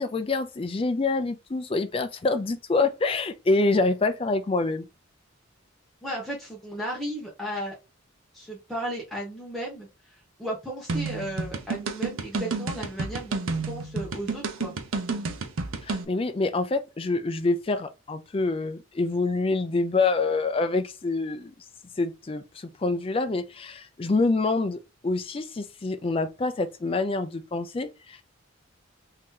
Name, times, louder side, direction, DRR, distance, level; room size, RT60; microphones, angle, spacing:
voice 1, 0.0-4.9 15.9-21.5 22.0-28.2, left 3 dB, 25° left, 0.4 m, -26 dB
voice 2, 6.0-7.7 8.3-9.9 10.4-14.7, right 1 dB, ahead, 0.8 m, -34 dB
sound 1, 10.9-16.1, right 3 dB, 75° right, 0.6 m, -30 dB
3.0 x 2.7 x 3.6 m
head